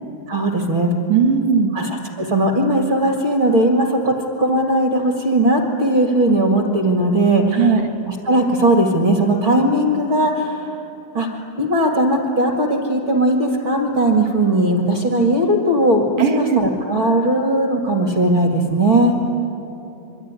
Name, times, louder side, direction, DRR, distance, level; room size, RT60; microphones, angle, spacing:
voice 1, 0.3-0.9 1.7-7.7 8.1-10.7 11.1-16.0 16.4-19.2, right 1 dB, 45° right, 2 dB, 1.7 m, -18 dB
voice 2, 1.1-1.7 7.5-7.9 16.2-16.6, right 6 dB, 65° right, 5 dB, 2.2 m, -17 dB
26.0 x 23.5 x 9.9 m, 3.0 s
omnidirectional pair, 5.5 m